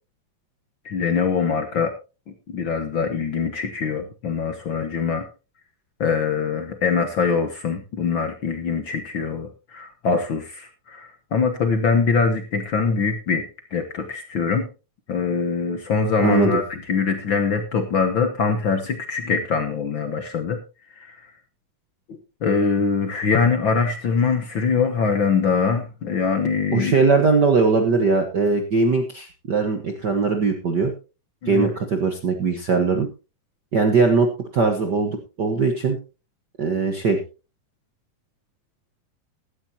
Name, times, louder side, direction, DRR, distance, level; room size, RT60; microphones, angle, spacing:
voice 1, 0.8-1.9 2.5-5.3 6.0-13.4 13.7-14.7 15.1-20.6 21.0-21.1 22.4-26.9 31.4-31.7, left 5 dB, 75° left, 7 dB, 1.1 m, -23 dB
voice 2, 16.2-16.6 26.7-30.9 31.5-33.1 33.7-34.3 34.5-36.0 36.6-37.2, right 4 dB, 75° right, 6 dB, 0.9 m, -20 dB
16.0 x 13.0 x 2.8 m, 0.31 s
omnidirectional pair, 4.1 m